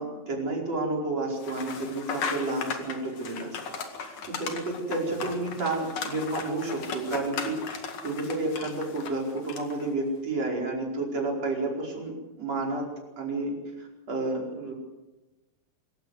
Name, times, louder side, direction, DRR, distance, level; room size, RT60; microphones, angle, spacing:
voice 1, 0.0-3.6 4.0-12.1 12.4-12.9 13.2-14.7, right 2 dB, 35° right, -1 dB, 5.6 m, -31 dB
sound 1, 1.4-9.9, left 5 dB, 50° left, 2.6 m, -37 dB
25.5 x 15.5 x 8.1 m, 1.1 s
omnidirectional pair, 5.7 m